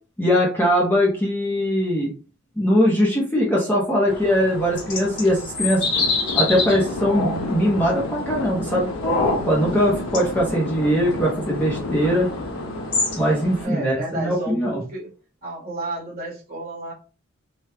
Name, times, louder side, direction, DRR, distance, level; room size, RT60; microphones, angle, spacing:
voice 1, 0.2-2.1 2.6-5.8 6.3-8.9 9.5-12.3 13.2-14.8, equal, 10° left, -3 dB, 0.7 m, -21 dB
sound 1, 4.1-13.6, left 2 dB, 60° left, 1.1 m, -28 dB
sound 2, 6.0-14.2, left 3 dB, 85° left, 0.5 m, -32 dB
voice 2, 13.6-15.1 15.4-16.9, right 2 dB, 45° right, -5 dB, 1.3 m, -32 dB
3.3 x 2.2 x 2.8 m, 0.36 s
head